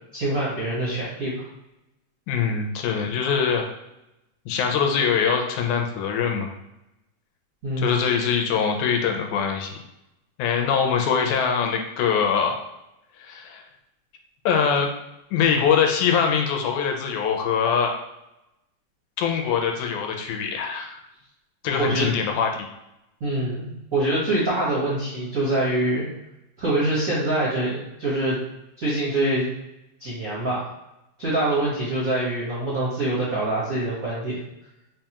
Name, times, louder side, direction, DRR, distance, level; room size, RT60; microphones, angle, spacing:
voice 1, 0.1-1.5 7.6-8.0 21.8-22.1 23.2-26.1 26.6-28.4 28.8-29.5 30.0-30.6 31.2-34.4, right 1 dB, 75° right, -9 dB, 0.7 m, -25 dB
voice 2, 2.3-3.7 4.5-6.5 7.8-9.7 10.4-12.6 13.2-13.6 14.5-14.9 15.3-17.9 19.2-21.0 21.6-22.7, left 6 dB, 80° left, 3 dB, 1.9 m, -23 dB
4.7 x 2.3 x 2.8 m, 0.89 s
omnidirectional pair, 3.4 m